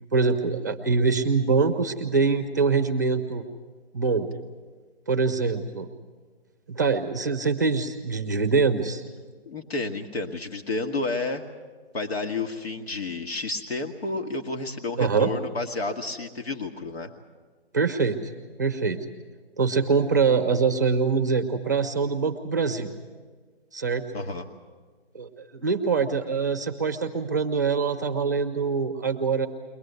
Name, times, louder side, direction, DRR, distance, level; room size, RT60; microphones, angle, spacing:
voice 1, 0.1-3.4 3.9-4.3 5.1-5.9 6.7-9.0 15.0-15.3 17.7-18.3 18.6-19.0 19.6-22.9 23.7-24.0 25.1-29.5, right 5 dB, 15° right, 7 dB, 0.7 m, -24 dB
voice 2, 9.5-11.4 11.9-17.1 24.1-24.5, left 3 dB, 75° left, 4 dB, 1.9 m, -30 dB
23.0 x 19.0 x 8.1 m, 1.4 s
hypercardioid pair, 175°, 32 cm